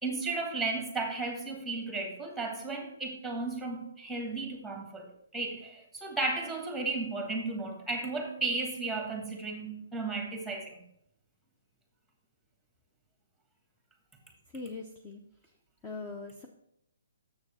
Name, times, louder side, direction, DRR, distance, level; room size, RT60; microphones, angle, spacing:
voice 1, 0.0-10.8, right 3 dB, ahead, 3 dB, 1.3 m, -34 dB
voice 2, 14.5-15.2 15.8-16.5, left 3 dB, 15° left, 2 dB, 0.6 m, -41 dB
7.0 x 6.7 x 4.1 m, 0.75 s
hypercardioid pair, 155°, 0 cm